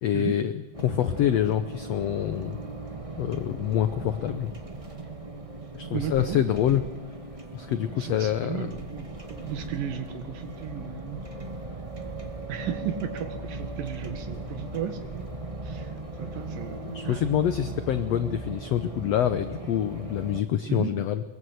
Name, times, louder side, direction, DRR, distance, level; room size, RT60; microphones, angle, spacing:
voice 1, 0.0-0.5 0.8-2.6 3.2-4.5 5.7-6.8 7.5-8.7 16.8-21.2, left 11 dB, 85° left, 10 dB, 1.4 m, -26 dB
sound 1, 0.7-20.4, right 2 dB, 40° right, 0.4 m, -38 dB
voice 2, 5.9-6.4 7.9-11.2 12.5-15.3 15.6-15.9 16.2-16.8 17.0-17.2 20.7-20.9, right 9 dB, 75° right, 7 dB, 3.4 m, -34 dB
22.5 x 22.0 x 7.9 m, 1.2 s
omnidirectional pair, 4.1 m